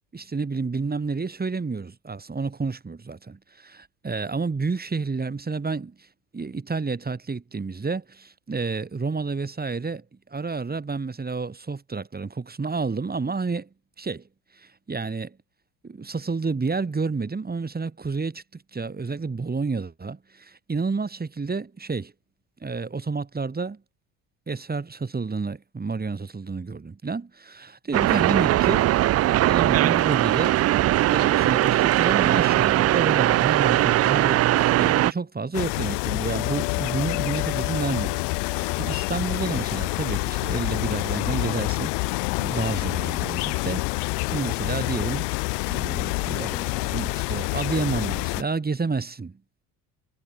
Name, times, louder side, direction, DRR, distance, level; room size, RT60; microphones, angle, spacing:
voice 1, 0.1-6.1 6.3-10.0 10.3-13.7 14.0-14.2 14.5-15.4 15.8-22.1 22.6-23.8 24.5-28.9 29.4-30.6 31.0-45.3 45.7-49.4, right 4 dB, 20° right, 5.5 m, -30 dB
sound 1, 27.9-35.1, right 14 dB, 40° right, 0.4 m, -20 dB
sound 2, 35.5-48.4, left 33 dB, 75° left, 2.5 m, -27 dB
supercardioid pair, 80°, 41 cm